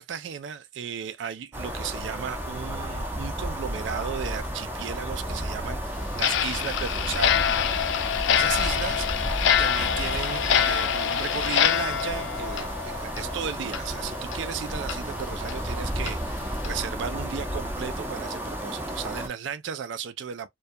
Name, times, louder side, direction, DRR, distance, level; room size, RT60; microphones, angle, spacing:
voice 1, 0.0-7.4 8.3-20.5, right 7 dB, 75° right, 0.4 m, -35 dB
sound 1, 1.5-19.3, equal, 10° right, 0.5 m, -32 dB
Clock, 6.1-13.4 13.7-13.8 14.3-14.4 14.9-15.0 15.5-15.6 16.1-16.2 16.6-16.8, left 9 dB, 75° left, 0.3 m, -25 dB
2.2 x 2.2 x 2.6 m
head